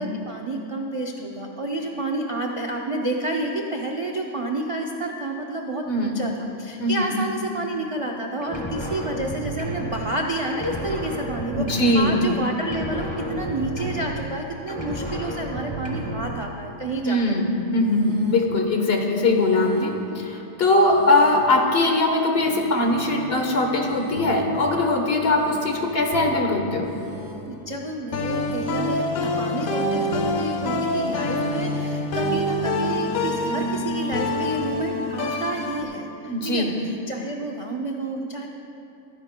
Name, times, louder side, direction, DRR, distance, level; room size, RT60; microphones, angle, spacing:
voice 1, 0.0-17.2 27.5-38.5, right 2 dB, 50° right, 1 dB, 0.3 m, -30 dB
voice 2, 5.9-6.2 6.8-7.1 11.6-12.2 17.0-26.9 36.3-36.8, left 2 dB, 45° left, 2 dB, 1.3 m, -21 dB
sound 1, 8.4-10.2 10.5-12.3 12.6-14.4 14.7-16.4, right 1 dB, 20° left, 1.6 m, -31 dB
sound 2, 17.8-18.5 19.3-20.1 20.8-21.6 22.3-23.0 23.8-24.6 25.3-26.1 26.8-27.6 28.3-29.0 29.8-30.5 31.3-32.0, right 1 dB, 85° right, 2.5 m, -42 dB
sound 3, 22.9-25.4 26.1-27.7 28.1-35.8, left 2 dB, 80° left, 1.2 m, -27 dB
22.5 x 10.0 x 2.2 m, 2.8 s
omnidirectional pair, 1.5 m